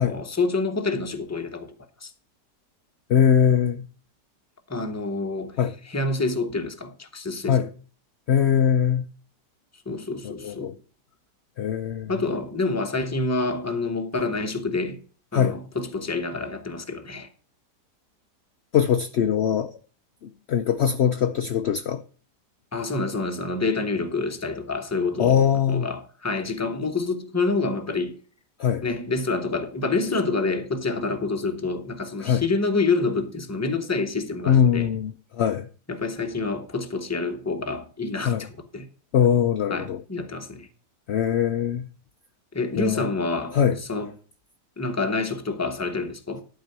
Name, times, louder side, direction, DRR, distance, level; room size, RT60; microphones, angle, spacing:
voice 1, 0.0-1.7 2.0-2.1 4.7-5.6 5.9-7.7 9.9-10.7 12.1-15.0 15.3-17.3 22.7-25.4 25.7-28.2 28.8-34.9 35.9-38.5 38.7-38.9 39.7-40.7 42.5-44.1 44.8-46.4, left 3 dB, 10° left, 0.9 m, -27 dB
voice 2, 3.1-3.9 5.6-5.7 7.5-7.7 8.3-9.1 10.2-10.7 11.6-12.1 15.3-15.6 18.7-19.7 20.2-22.0 25.2-25.9 28.6-28.8 32.2-32.4 34.5-35.7 38.2-38.5 39.1-40.0 41.1-41.9 42.8-43.0 43.5-43.8, left 8 dB, 65° left, 0.6 m, -21 dB
11.5 x 4.7 x 6.7 m
omnidirectional pair, 1.8 m